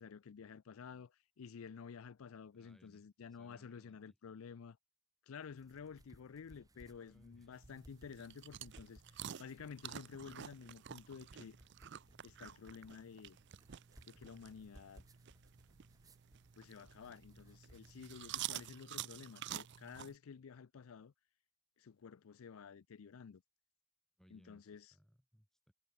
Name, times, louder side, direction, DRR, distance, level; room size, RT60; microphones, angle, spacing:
voice 1, 0.0-4.8 5.2-11.6 12.2-13.4 14.0-15.0 16.6-21.1 21.8-23.4 24.3-24.9, left 6 dB, 85° left, 0.5 m, -52 dB
voice 2, 2.5-3.0 3.4-4.2 6.9-7.6 18.1-18.3 24.2-25.7, equal, ahead, 2.3 m, -67 dB
sound 1, 5.4-18.9, right 1 dB, 15° right, 1.4 m, -64 dB
sound 2, 7.5-20.1, right 11 dB, 55° right, 0.5 m, -50 dB
head